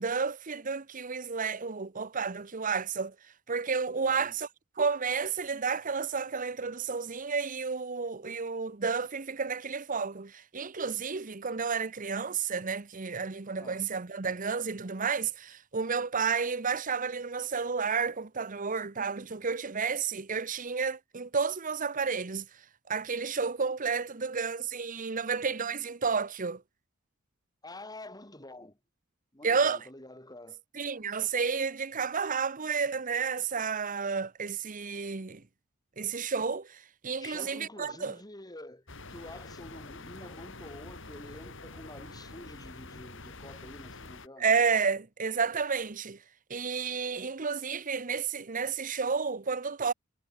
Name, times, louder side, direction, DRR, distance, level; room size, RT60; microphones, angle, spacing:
voice 1, 0.0-3.1 3.5-4.5 4.8-22.4 22.9-26.6 29.4-29.8 30.7-35.4 36.0-38.2 44.4-46.2 46.5-49.9, right 5 dB, 40° right, 1.0 m, -31 dB
voice 2, 4.0-4.4 13.5-13.8 27.6-28.8 29.3-30.6 31.1-31.2 37.2-44.7, left 1 dB, 20° left, 8.0 m, -48 dB
sound 1, 38.9-44.3, left 3 dB, 65° left, 6.3 m, -46 dB
head